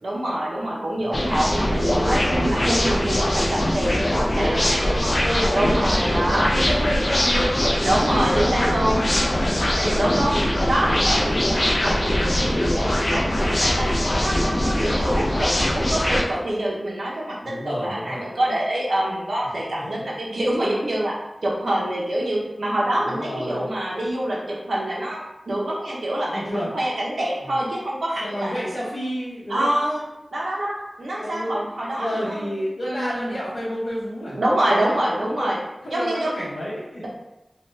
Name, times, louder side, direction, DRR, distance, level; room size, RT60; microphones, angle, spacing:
voice 1, 0.0-5.1 5.5-6.5 7.8-9.0 10.0-10.4 10.7-21.2 21.4-28.5 29.5-30.1 30.3-33.4 34.3-35.6 35.9-36.4 37.0-37.1, right 1 dB, 85° right, -4 dB, 0.6 m, -26 dB
voice 2, 1.0-1.7 2.6-2.7 3.9-5.8 6.3-10.0 15.6-15.8 17.4-18.2 19.7-20.0 23.0-23.7 26.3-26.7 27.4-27.5 28.2-29.7 31.2-31.6 32.0-34.4 34.7-35.5 35.8-37.1, equal, 90° left, -12 dB, 0.7 m, -30 dB
sound 1, 1.1-16.2, left 1 dB, 45° left, 0.4 m, -22 dB
2.7 x 2.2 x 3.2 m, 0.96 s
wide cardioid pair, 50°, 0 cm